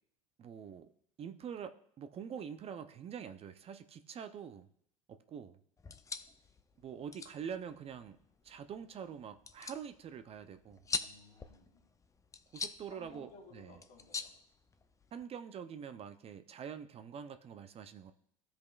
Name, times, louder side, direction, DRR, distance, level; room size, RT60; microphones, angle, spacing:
voice 1, 0.4-0.9 1.2-4.7 5.1-5.6 6.8-8.2 8.4-10.8 12.5-13.3 13.5-13.8 15.1-18.1, right 7 dB, 35° right, 0.5 m, -45 dB
sound 1, 5.8-15.2, left 4 dB, 20° left, 0.5 m, -45 dB
voice 2, 10.9-11.9 12.9-14.4, left 4 dB, 60° left, 3.0 m, -58 dB
14.5 x 5.1 x 2.4 m
hypercardioid pair, 75°, 18 cm